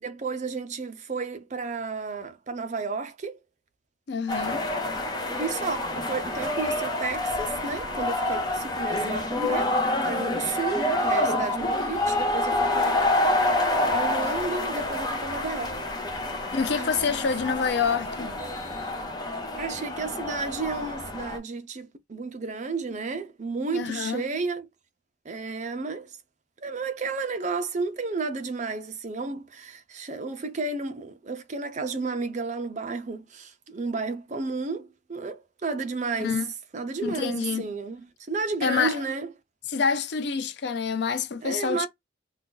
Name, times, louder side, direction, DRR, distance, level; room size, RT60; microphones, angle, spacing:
voice 1, 0.0-3.4 5.3-9.7 10.0-13.4 13.9-15.8 16.7-17.5 19.6-24.7 25.2-26.2 26.6-36.4 36.7-39.3 41.4-41.9, right 4 dB, 40° right, 0.5 m, -32 dB
voice 2, 4.1-4.6 16.5-18.3 23.7-24.2 36.2-36.5 37.0-37.7 38.6-39.0 39.7-41.9, left 5 dB, 60° left, 0.4 m, -27 dB
sound 1, 4.3-21.4, left 1 dB, 20° left, 0.7 m, -27 dB
2.6 x 2.3 x 3.7 m
head